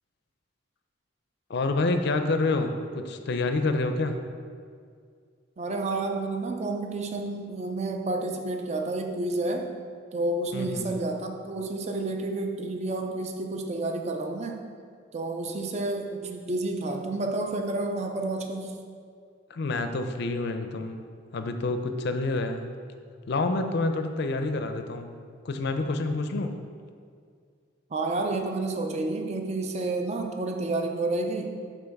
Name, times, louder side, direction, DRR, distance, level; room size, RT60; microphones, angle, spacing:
voice 1, 1.5-4.2 10.5-10.9 19.5-22.7 23.3-26.5, left 2 dB, 55° left, 7 dB, 0.4 m, -28 dB
voice 2, 5.6-9.7 10.1-14.6 15.1-18.8 27.9-31.5, right 2 dB, 35° right, 4 dB, 0.4 m, -30 dB
5.7 x 3.6 x 5.2 m, 2.1 s
head